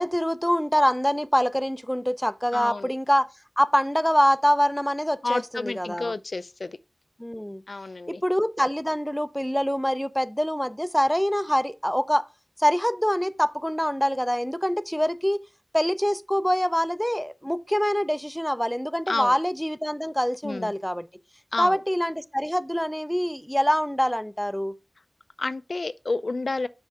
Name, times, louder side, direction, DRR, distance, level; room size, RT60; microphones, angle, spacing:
voice 1, 0.0-3.3 3.6-6.1 7.2-7.6 8.1-12.2 12.6-15.4 15.7-21.1 21.6-24.7, equal, 5° left, 0.5 m, -24 dB
voice 2, 2.5-2.9 5.2-6.8 7.7-8.2 19.1-19.4 20.4-20.7 21.5-21.8 25.4-26.7, left 3 dB, 65° left, 0.4 m, -30 dB
5.7 x 4.4 x 6.1 m
wide cardioid pair, 70°, 0 cm